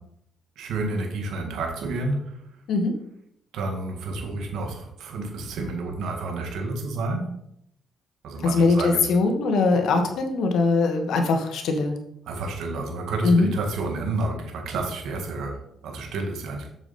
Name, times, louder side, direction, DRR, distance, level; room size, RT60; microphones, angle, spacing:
voice 1, 0.6-2.5 3.5-7.4 8.2-9.1 12.2-16.7, right 2 dB, 80° right, 2 dB, 1.7 m, -30 dB
voice 2, 8.4-12.0 13.2-13.5, left 3 dB, 75° left, 5 dB, 1.6 m, -21 dB
7.1 x 7.0 x 4.3 m, 0.73 s
cardioid pair, 90°, 0 cm